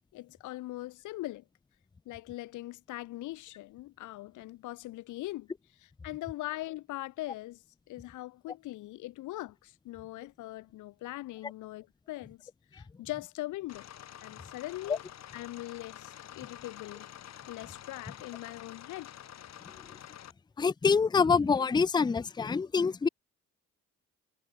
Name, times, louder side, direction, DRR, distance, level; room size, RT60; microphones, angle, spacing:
voice 1, 0.1-1.4 2.1-5.5 5.8-7.6 7.9-13.9 14.2-15.0 15.3-17.1 17.5-19.1, left 17 dB, 80° left, 0.6 m, -41 dB
sound 1, 13.7-20.3, left 11 dB, 60° left, 1.3 m, -48 dB
voice 2, 20.6-23.1, left 5 dB, 15° left, 0.5 m, -26 dB
cardioid pair, 90°, 30 cm